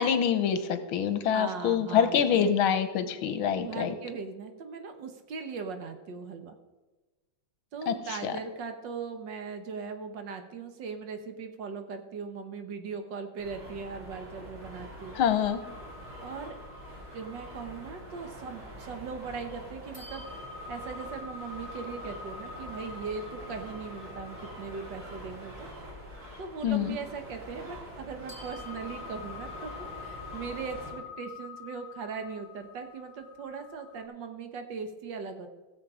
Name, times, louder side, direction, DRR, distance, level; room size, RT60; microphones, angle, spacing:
voice 1, 0.0-3.9 7.9-8.3 15.1-15.6 26.6-27.0, left 8 dB, 80° left, 10 dB, 1.7 m, -26 dB
voice 2, 1.2-2.4 3.6-6.6 7.7-15.2 16.2-16.6 17.1-25.7 26.4-35.5, right 5 dB, 65° right, 7 dB, 1.6 m, -39 dB
sound 1, 13.4-30.9, equal, 85° right, 6.0 m, -45 dB
sound 2, 15.4-19.5 19.9-28.0 28.3-34.0, left 5 dB, 25° right, 2.0 m, -47 dB
16.5 x 7.3 x 4.9 m, 1.2 s
omnidirectional pair, 2.3 m